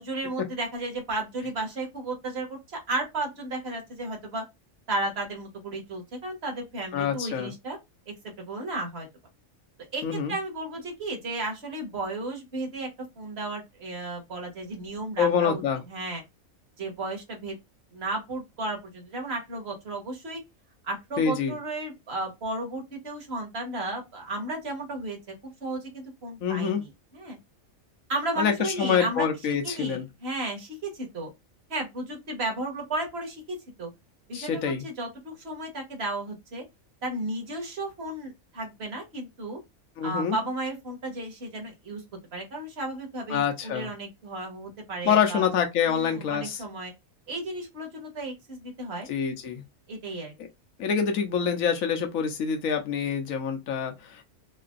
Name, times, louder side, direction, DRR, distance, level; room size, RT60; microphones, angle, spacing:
voice 1, 0.0-2.6 2.9-4.4 4.9-7.8 8.1-9.1 9.9-12.9 13.1-15.6 15.9-16.2 16.8-17.6 17.9-20.4 20.8-25.2 25.4-27.4 28.1-29.3 29.6-31.3 31.7-33.9 34.3-36.6 37.0-39.6 40.0-42.0 42.3-45.4 45.8-46.9 47.3-49.1 49.9-50.3, right 2 dB, 50° right, 1.7 m, -34 dB
voice 2, 6.9-7.5 10.0-10.4 15.2-15.8 21.2-21.5 26.4-26.8 28.4-30.1 34.3-34.8 40.0-40.4 43.3-43.9 45.0-46.6 49.1-49.6 50.8-54.2, left 7 dB, 75° left, 1.3 m, -26 dB
4.1 x 2.8 x 2.5 m
omnidirectional pair, 1.4 m